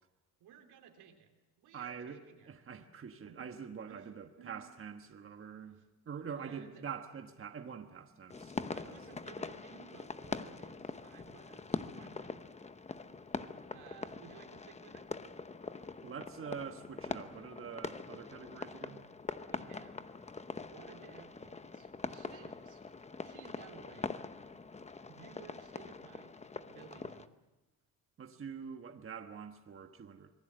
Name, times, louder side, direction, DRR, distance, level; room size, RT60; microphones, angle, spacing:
voice 1, 0.4-1.3 1.6-2.9 3.2-3.5 3.9-4.6 5.6-5.9 6.3-6.9 8.6-12.4 13.3-15.1 19.4-20.1 20.6-22.8 23.2-24.1 25.1-27.4, right 8 dB, 85° right, 4 dB, 3.5 m, -57 dB
voice 2, 1.7-2.2 2.5-5.8 6.0-9.0 16.0-19.1 28.2-30.3, right 6 dB, 35° right, 5 dB, 1.4 m, -45 dB
sound 1, 8.3-27.3, left 4 dB, 20° left, 0.8 m, -43 dB
26.0 x 19.5 x 7.8 m, 1.1 s
cardioid pair, 120°, 37 cm